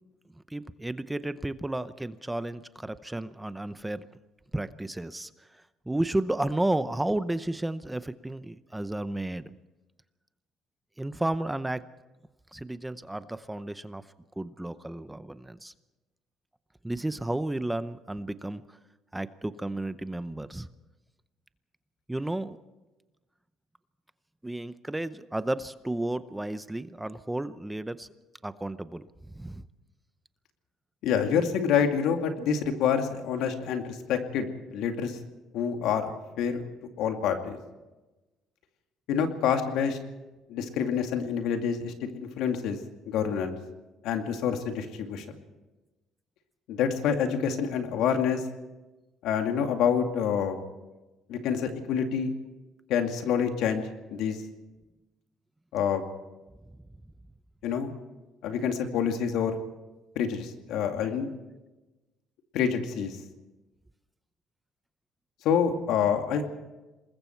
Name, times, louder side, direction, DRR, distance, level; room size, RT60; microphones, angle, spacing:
voice 1, 0.5-4.1 4.5-9.5 11.0-11.8 12.5-14.0 14.4-15.7 16.8-18.8 19.1-20.7 22.1-22.6 24.4-28.1 28.4-29.6, right 1 dB, 10° right, 13 dB, 0.7 m, -32 dB
voice 2, 31.0-35.2 35.5-36.1 36.4-36.6 37.0-37.6 39.1-40.0 40.5-42.8 43.1-43.6 44.0-45.3 46.7-48.4 49.2-50.6 51.3-52.3 52.9-54.4 55.7-56.0 57.6-57.9 58.4-59.6 60.2-61.3 62.5-63.1 65.4-66.4, left 7 dB, 75° left, 5 dB, 2.3 m, -27 dB
27.0 x 20.5 x 4.6 m, 1.1 s
cardioid pair, 100°, 0 cm